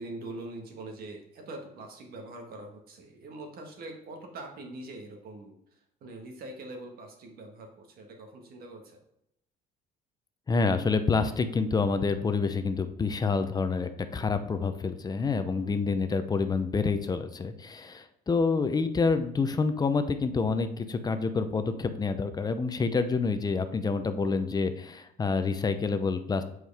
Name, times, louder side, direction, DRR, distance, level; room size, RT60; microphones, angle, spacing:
voice 1, 0.0-5.5 6.0-9.0 15.5-15.8, right 2 dB, 65° right, 3 dB, 1.5 m, -43 dB
voice 2, 10.5-26.4, left 4 dB, 25° left, 9 dB, 0.6 m, -28 dB
7.6 x 4.7 x 3.4 m, 0.78 s
cardioid pair, 110°, 17 cm